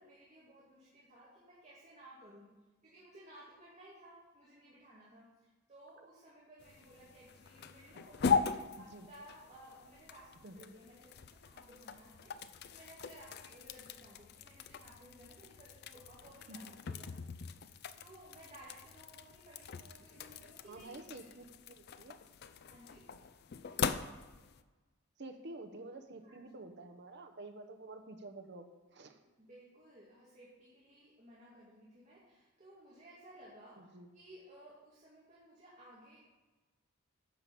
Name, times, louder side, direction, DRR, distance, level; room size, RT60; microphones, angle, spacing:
voice 1, 0.0-2.5 2.8-10.3 10.5-12.3 12.7-17.3 17.6-21.3 22.7-23.0 26.2-26.5 29.4-36.2, right 1 dB, 35° right, -7 dB, 2.0 m, -57 dB
sound 1, 6.6-24.6, left 5 dB, 50° left, 0.4 m, -40 dB
voice 2, 20.7-22.2 25.2-29.2 33.8-34.1, right 2 dB, 55° right, 6 dB, 0.9 m, -49 dB
10.0 x 5.2 x 7.0 m, 1.2 s
head